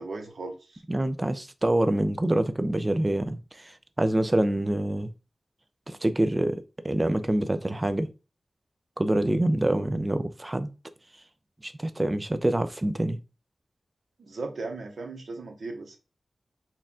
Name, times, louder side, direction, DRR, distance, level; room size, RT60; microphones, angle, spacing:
voice 1, 0.0-0.8 14.2-16.0, right 3 dB, 70° right, 1.0 m, -37 dB
voice 2, 0.9-5.1 5.9-8.1 9.0-10.7 11.6-13.2, right 1 dB, 20° right, 0.4 m, -26 dB
4.3 x 2.4 x 3.6 m
wide cardioid pair, 125°, 0 cm